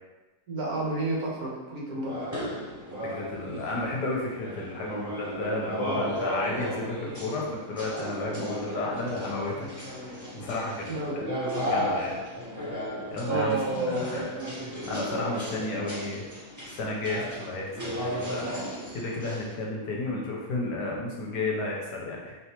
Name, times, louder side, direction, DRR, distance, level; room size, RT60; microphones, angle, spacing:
voice 1, 0.5-2.2 10.9-11.2 13.3-14.1, right 1 dB, 60° right, -4 dB, 1.5 m, -31 dB
sound 1, 2.0-19.5, equal, 30° right, 0.3 m, -34 dB
voice 2, 3.0-9.7 10.3-11.2 11.7-12.2 13.1-14.3 14.9-16.2 16.8-18.6 18.9-22.4, left 2 dB, 80° left, -2 dB, 1.4 m, -32 dB
3.8 x 3.3 x 2.9 m, 1.1 s
omnidirectional pair, 1.8 m